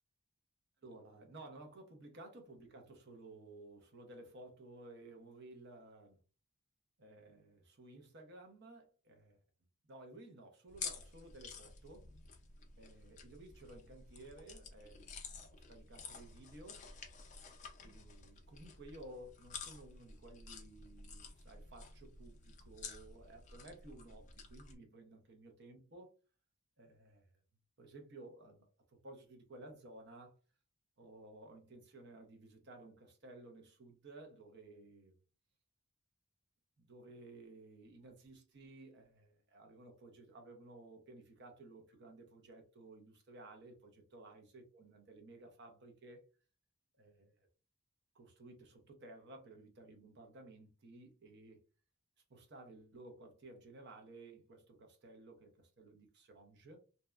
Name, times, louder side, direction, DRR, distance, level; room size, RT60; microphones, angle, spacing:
voice 1, 0.8-6.2 7.0-9.4 9.8-12.1 12.8-15.1 15.4-16.8 17.8-26.1 26.8-27.3 27.8-30.4 31.0-35.1 36.8-46.2 47.0-47.3 48.1-51.6 52.3-56.8, right 2 dB, 50° right, 0.6 m, -55 dB
sound 1, 10.7-24.8, left 5 dB, 35° left, 0.3 m, -51 dB
2.7 x 2.1 x 2.3 m
head